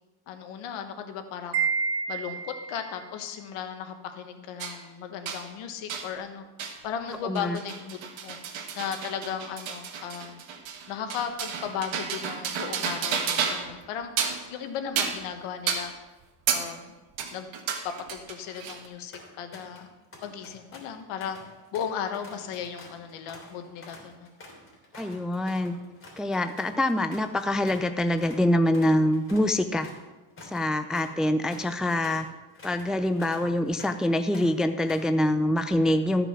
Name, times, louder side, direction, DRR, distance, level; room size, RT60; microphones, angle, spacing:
voice 1, 0.3-1.7 2.1-6.4 6.8-10.4 10.9-14.1 14.5-15.9 16.5-16.9 17.3-17.5 18.1-19.9 20.2-21.4 21.7-24.3, left 8 dB, 85° left, 7 dB, 1.4 m, -36 dB
Wind chime, 1.5-2.9, right 5 dB, 25° right, 1.8 m, -28 dB
sound 1, 4.6-4.8 5.3-5.4 5.9-6.1 6.6-6.8 7.1-13.8 14.0-14.5 15.0-15.3 15.7-15.9 16.5-16.7 17.2-18.9, right 7 dB, 70° right, 1.5 m, -31 dB
voice 2, 7.2-7.6 24.9-25.8 26.2-29.9 30.4-32.3 32.6-36.3, left 1 dB, ahead, 8 dB, 0.4 m, -25 dB
sound 2, 18.7-18.8 19.1-19.9 20.1-27.9 28.2-28.4 28.7-34.1 34.3-35.2, left 2 dB, 25° left, 3.2 m, -48 dB
14.0 x 5.8 x 5.9 m, 1.2 s
cardioid pair, 110°, 49 cm